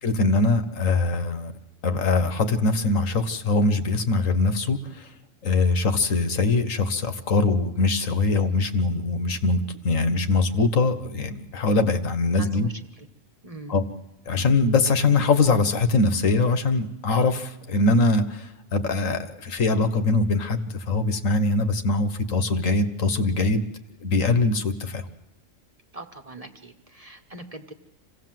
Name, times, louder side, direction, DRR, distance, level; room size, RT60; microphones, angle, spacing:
voice 1, 0.0-1.5 1.8-5.1 5.4-12.7 13.7-13.8 14.3-23.6 24.0-25.0, left 3 dB, 80° left, 9 dB, 1.7 m, -22 dB
voice 2, 12.4-13.1 13.4-13.8 25.9-27.7, right 2 dB, 30° right, 5 dB, 1.2 m, -42 dB
26.0 x 16.5 x 7.7 m, 0.98 s
omnidirectional pair, 1.3 m